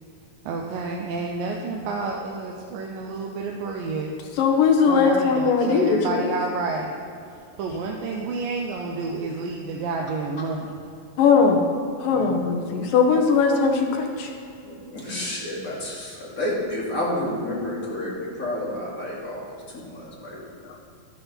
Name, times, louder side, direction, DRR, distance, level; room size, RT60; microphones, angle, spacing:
voice 1, 0.5-4.1 4.9-6.9 7.6-10.7, right 3 dB, 85° right, 0 dB, 2.6 m, -30 dB
voice 2, 4.4-6.3 11.2-11.6 12.0-14.3, left 5 dB, 80° left, 3 dB, 2.9 m, -19 dB
voice 3, 14.6-20.6, left 1 dB, 25° left, -5 dB, 2.6 m, -30 dB
12.5 x 11.5 x 4.4 m, 2.5 s
omnidirectional pair, 3.9 m